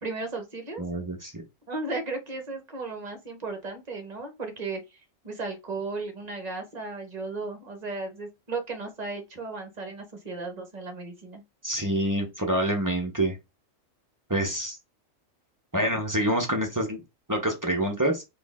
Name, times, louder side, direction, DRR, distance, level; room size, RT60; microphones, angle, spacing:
voice 1, 0.0-0.8 1.7-5.0 5.2-11.4, right 3 dB, 35° right, 1.0 m, -35 dB
voice 2, 0.8-1.3 11.6-13.4 14.3-14.8 15.7-17.0 17.3-18.2, right 1 dB, 20° right, 0.7 m, -26 dB
4.3 x 2.6 x 3.5 m
omnidirectional pair, 1.3 m